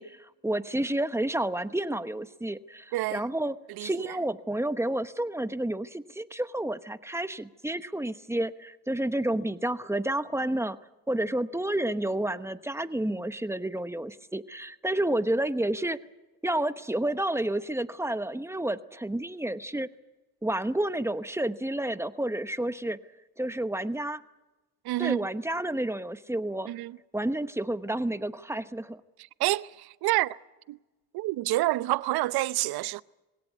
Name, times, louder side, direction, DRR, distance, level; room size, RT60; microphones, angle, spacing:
voice 1, 0.0-10.8 11.1-16.0 16.4-19.9 20.4-23.0 23.4-24.2 25.0-26.7 27.1-29.0, right 1 dB, 5° right, 1.0 m, -30 dB
voice 2, 24.8-25.3 26.7-26.9 29.4-30.4 30.7-30.8 31.1-33.0, right 17 dB, 80° right, 0.7 m, -28 dB
22.0 x 17.5 x 9.5 m
cardioid pair, 85°, 37 cm